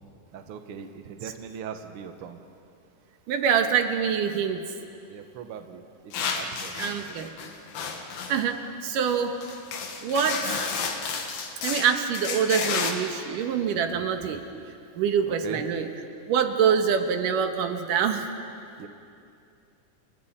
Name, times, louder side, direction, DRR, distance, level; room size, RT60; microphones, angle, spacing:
voice 1, 0.3-2.4 5.1-7.3 15.3-15.6 18.8-18.9, right 7 dB, 60° right, 7 dB, 1.5 m, -40 dB
voice 2, 3.3-4.6 6.8-7.3 8.3-9.4 10.0-10.6 11.6-14.4 15.0-15.9 16.3-18.3, right 7 dB, 75° right, 6 dB, 2.8 m, -25 dB
sound 1, 6.1-8.4 9.1-9.2 9.4-12.9, left 5 dB, 85° left, 3.3 m, -31 dB
30.0 x 29.5 x 4.3 m, 2.5 s
omnidirectional pair, 3.9 m